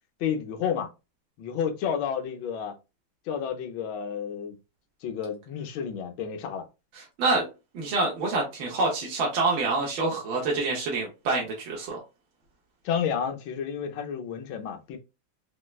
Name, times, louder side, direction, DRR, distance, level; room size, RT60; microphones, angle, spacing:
voice 1, 0.2-0.9 1.4-2.7 3.3-4.6 5.0-6.7 12.8-15.0, left 7 dB, 75° left, 1.4 m, -31 dB
voice 2, 7.0-7.4 7.7-12.0, right 3 dB, 80° right, 1.7 m, -27 dB
4.5 x 2.1 x 2.3 m
omnidirectional pair, 2.2 m